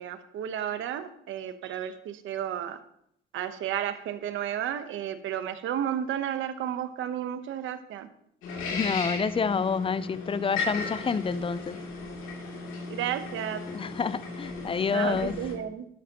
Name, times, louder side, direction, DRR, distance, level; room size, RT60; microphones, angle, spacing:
voice 1, 0.0-2.8 3.3-8.1 12.9-13.6 14.9-15.9, right 10 dB, 80° right, 1.0 m, -32 dB
sound 1, 8.4-15.5, left 3 dB, 85° left, 2.8 m, -36 dB
voice 2, 8.7-11.8 13.7-15.3, left 5 dB, 25° left, 0.5 m, -28 dB
12.0 x 11.5 x 2.9 m
cardioid pair, 90°, 20 cm